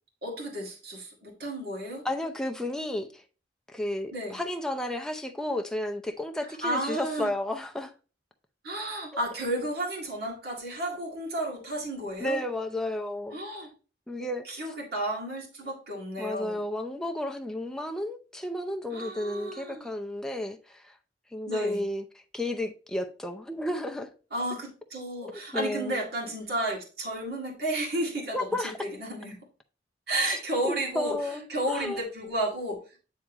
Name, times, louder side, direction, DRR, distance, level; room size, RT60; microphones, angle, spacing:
voice 1, 0.2-2.0 4.1-4.4 6.6-7.3 8.6-12.4 13.3-13.7 14.2-16.6 18.9-19.9 21.5-21.8 24.3-29.4 30.1-33.0, right 1 dB, 55° right, 1.9 m, -32 dB
voice 2, 2.0-3.2 3.7-7.9 12.2-13.4 14.1-14.7 16.2-20.9 21.3-22.0 22.3-24.1 25.5-26.0 28.3-28.8 30.7-32.0, left 1 dB, 5° left, 0.5 m, -32 dB
8.8 x 3.5 x 3.0 m
head